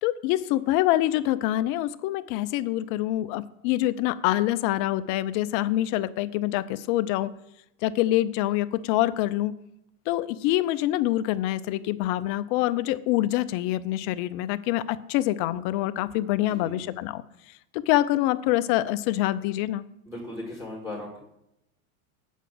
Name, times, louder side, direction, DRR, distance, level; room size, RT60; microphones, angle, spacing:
voice 1, 0.0-7.3 7.8-9.5 10.1-17.2 17.7-19.8, left 15 dB, 45° left, 15 dB, 0.6 m, -25 dB
voice 2, 16.3-17.0 20.1-21.2, left 1 dB, 5° right, -3 dB, 3.7 m, -38 dB
8.2 x 5.0 x 7.5 m, 0.82 s
supercardioid pair, 120°, 44 cm